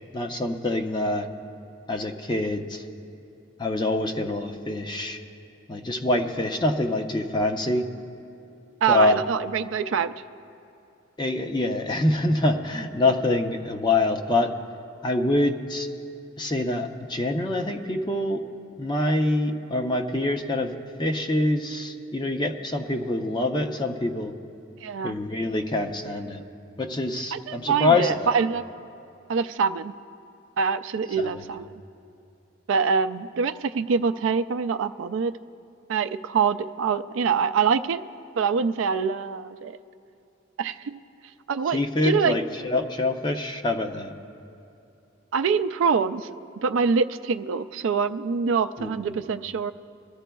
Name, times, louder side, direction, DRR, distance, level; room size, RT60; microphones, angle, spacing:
voice 1, 0.1-1.3 1.9-2.8 3.6-5.2 5.7-7.8 8.9-9.2 11.2-14.5 15.0-15.9 16.4-18.4 18.8-24.3 25.0-26.4 26.8-28.3 31.2-31.4 41.7-44.1 48.8-49.0, left 2 dB, 20° left, 5 dB, 0.6 m, -25 dB
voice 2, 8.8-10.1 24.8-25.2 27.3-28.6 29.3-29.9 30.6-31.7 32.7-35.3 35.9-38.0 38.4-39.8 40.6-41.0 41.5-42.4 45.3-46.3 46.6-49.7, right 5 dB, 75° right, 11 dB, 0.4 m, -25 dB
23.0 x 13.5 x 2.3 m, 2.7 s
head